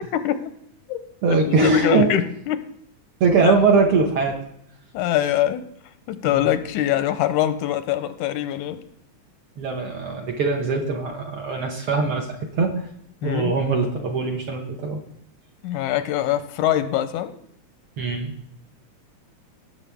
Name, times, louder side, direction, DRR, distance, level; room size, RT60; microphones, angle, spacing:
voice 1, 0.1-0.5 0.9-1.0 1.3-2.6 3.4-3.5 4.9-5.6 6.1-8.8 13.2-13.6 15.6-17.4, left 12 dB, 85° left, 11 dB, 2.1 m, -23 dB
voice 2, 1.2-2.1 3.2-4.4 9.6-12.3 12.6-12.8 13.2-15.0 18.0-18.3, right 4 dB, 60° right, 2 dB, 1.5 m, -21 dB
18.0 x 6.9 x 3.4 m, 0.72 s
omnidirectional pair, 3.5 m